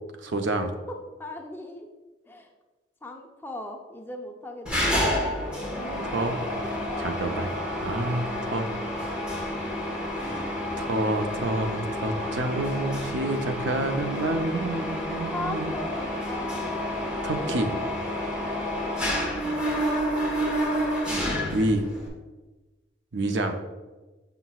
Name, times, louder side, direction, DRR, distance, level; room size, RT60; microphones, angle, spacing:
voice 1, 0.2-0.7 6.0-6.4 7.0-7.5 7.8-8.7 10.2-10.5 10.8-15.7 17.2-17.7 21.5-21.9 23.1-23.5, right 2 dB, 70° right, 6 dB, 0.6 m, -28 dB
voice 2, 1.2-1.9 2.3-2.5 3.0-5.0 6.8-7.3 14.9-16.6 17.2-17.7 20.2-20.6, left 2 dB, 10° left, 2 dB, 0.5 m, -39 dB
Mechanisms, 4.7-22.1, equal, 5° right, 1.2 m, -29 dB
7.0 x 5.8 x 2.4 m, 1.2 s
head